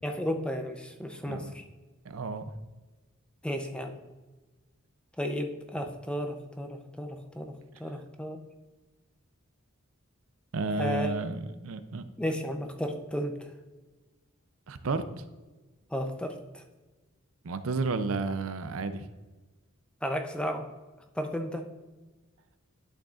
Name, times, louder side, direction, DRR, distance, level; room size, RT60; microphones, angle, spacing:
voice 1, 0.0-1.6 3.4-4.0 5.2-7.5 7.8-8.4 10.8-11.1 12.2-13.3 15.9-16.6 20.0-20.7 21.2-21.6, equal, 5° left, 5 dB, 0.6 m, -33 dB
voice 2, 2.1-2.4 10.5-12.0 14.7-15.2 17.4-19.1, right 3 dB, 75° right, 11 dB, 0.5 m, -32 dB
11.0 x 6.4 x 2.5 m, 1.2 s
head